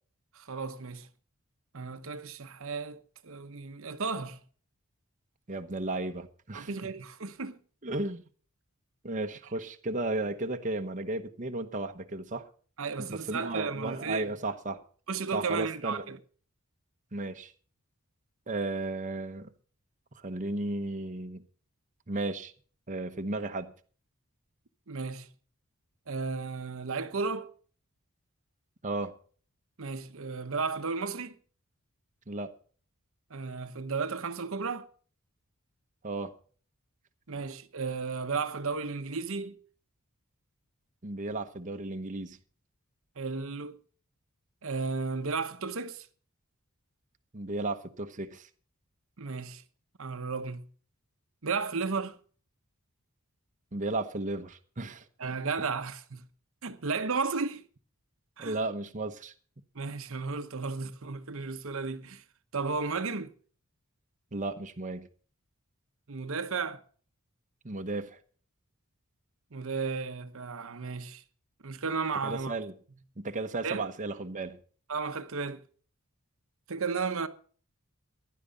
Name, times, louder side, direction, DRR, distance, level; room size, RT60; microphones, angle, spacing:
voice 1, 0.3-1.1 1.7-4.4 6.5-7.6 12.8-14.3 15.1-16.2 24.9-25.3 26.1-27.5 29.8-31.3 33.3-34.9 37.3-39.6 43.2-43.8 44.6-46.1 49.2-49.6 50.0-50.7 51.4-52.2 55.2-56.2 56.6-57.6 58.4-58.6 59.7-62.2 62.5-63.3 66.1-66.8 69.5-71.2 71.6-72.5 73.6-73.8 74.9-75.6 76.7-77.3, right 4 dB, 65° right, 1.0 m, -34 dB
voice 2, 5.5-6.7 7.8-8.2 9.0-12.5 13.0-14.8 15.3-16.1 17.1-17.5 18.5-19.5 20.2-21.4 22.1-22.5 22.9-23.7 28.8-29.1 32.3-32.5 36.0-36.3 41.0-42.4 47.3-48.5 53.7-55.0 58.4-59.3 64.3-65.1 67.6-68.2 72.2-72.8 73.2-74.6, right 2 dB, 35° right, 1.0 m, -34 dB
15.5 x 11.0 x 5.1 m
head